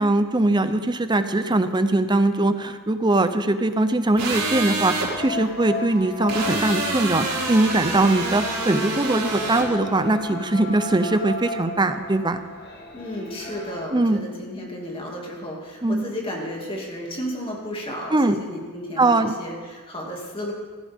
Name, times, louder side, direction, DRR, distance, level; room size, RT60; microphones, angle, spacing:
voice 1, 0.0-12.4 13.9-14.2 15.8-16.1 18.1-18.4 19.0-19.3, right 2 dB, 20° right, 10 dB, 0.7 m, -21 dB
sound 1, 4.2-5.1 6.3-9.7, right 3 dB, 75° right, 3.7 m, -27 dB
sound 2, 5.2-13.9, left 3 dB, 45° left, 2.2 m, -35 dB
voice 2, 12.9-20.5, equal, 25° left, -1 dB, 2.5 m, -33 dB
16.0 x 15.5 x 3.7 m, 1.5 s
head